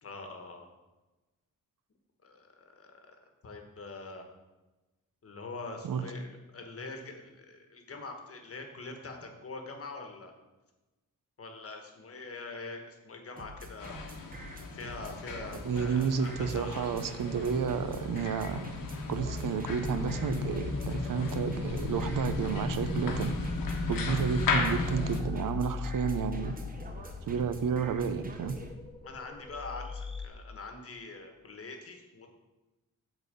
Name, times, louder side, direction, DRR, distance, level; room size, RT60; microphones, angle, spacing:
voice 1, 0.0-0.7 2.2-4.3 5.2-10.3 11.4-14.0 14.7-16.7 29.0-32.3, left 3 dB, 45° left, 4 dB, 1.2 m, -44 dB
sound 1, 13.4-28.7, right 1 dB, 25° right, 0.9 m, -46 dB
sound 2, 13.8-25.2, left 3 dB, 80° left, 1.2 m, -35 dB
voice 2, 15.6-18.6 19.1-23.3 23.9-26.5 27.2-28.6, right 6 dB, 75° right, 10 dB, 0.7 m, -31 dB
sound 3, 19.8-30.3, left 5 dB, 15° left, 0.6 m, -40 dB
8.8 x 4.1 x 6.7 m, 1.1 s
wide cardioid pair, 160°, 33 cm